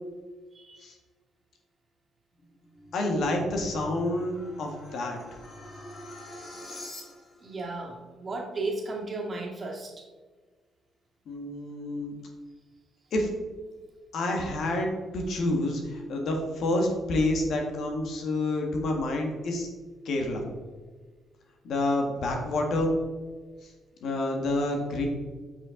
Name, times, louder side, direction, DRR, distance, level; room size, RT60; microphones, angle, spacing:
voice 1, 0.5-0.9 6.7-6.9 7.4-10.0, right 2 dB, 35° right, 0 dB, 1.9 m, -35 dB
sound 1, 2.3-7.5, left 1 dB, 45° left, 2.1 m, -45 dB
voice 2, 2.9-5.2 11.3-12.2 13.1-13.3 14.1-19.7 20.0-20.4 21.6-22.9 23.6-23.7 24.0-25.1, left 1 dB, 70° left, 2 dB, 1.7 m, -28 dB
7.9 x 5.8 x 3.8 m, 1.4 s
cardioid pair, 90°, 0 cm